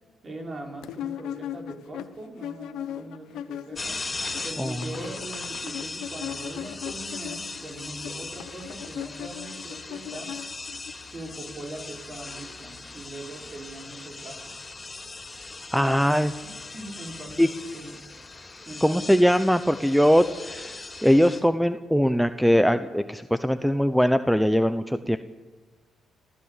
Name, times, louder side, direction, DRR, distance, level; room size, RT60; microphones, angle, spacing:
voice 1, 0.2-10.3 11.0-14.6 15.8-15.9 16.4-17.9 18.7-19.1, right 2 dB, 35° right, 1 dB, 5.6 m, -41 dB
sound 1, 0.8-4.0 4.2-10.9, left 10 dB, 85° left, 1.0 m, -38 dB
sound 2, 3.7-21.4, left 3 dB, 25° left, 4.7 m, -39 dB
voice 2, 15.7-16.3 17.4-17.5 18.8-25.2, equal, ahead, 11 dB, 0.8 m, -21 dB
27.0 x 15.5 x 8.4 m, 1.3 s
cardioid pair, 90°, 0 cm